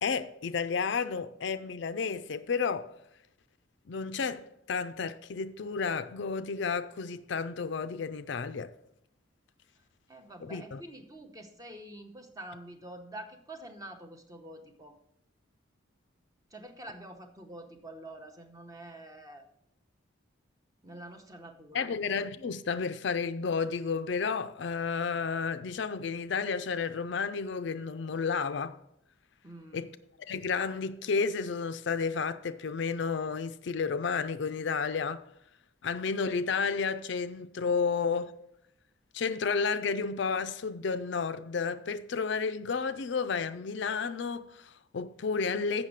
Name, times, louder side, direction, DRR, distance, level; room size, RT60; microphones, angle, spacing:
voice 1, 0.0-2.9 3.9-8.7 10.4-10.8 21.7-28.8 29.7-29.9 30.3-35.3 35.8-38.3 39.1-45.9, left 5 dB, 60° left, 0.4 m, -31 dB
voice 2, 10.1-15.0 16.5-19.5 20.8-22.0 29.4-30.0, right 1 dB, 15° right, 0.8 m, -47 dB
7.4 x 6.0 x 6.4 m
head